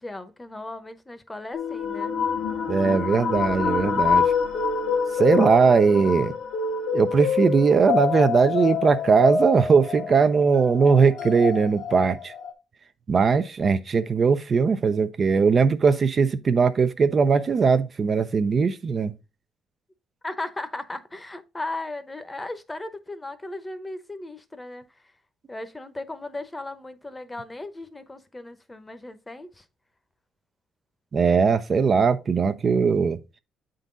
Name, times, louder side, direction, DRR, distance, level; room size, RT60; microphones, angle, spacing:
voice 1, 0.0-2.1 20.2-24.8 25.5-29.6, left 2 dB, 15° left, 0.9 m, -36 dB
sound 1, 1.5-12.5, left 6 dB, 90° left, 1.5 m, -26 dB
voice 2, 2.7-4.3 5.2-6.3 6.9-12.3 13.1-19.1 31.1-33.2, right 5 dB, 45° right, 0.5 m, -20 dB
8.0 x 3.9 x 3.7 m
cardioid pair, 90°, 0 cm